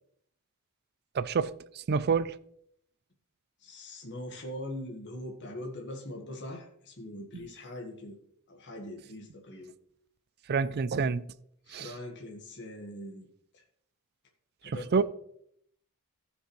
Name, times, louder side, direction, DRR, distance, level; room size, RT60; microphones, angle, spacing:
voice 1, 1.1-2.4 7.3-7.5 10.5-11.3 11.7-11.9 14.6-15.0, right 5 dB, 45° right, 0.4 m, -28 dB
voice 2, 3.6-8.2 8.5-9.7 11.7-13.6 14.6-15.0, left 1 dB, 50° left, 1.5 m, -42 dB
15.0 x 6.9 x 3.1 m
head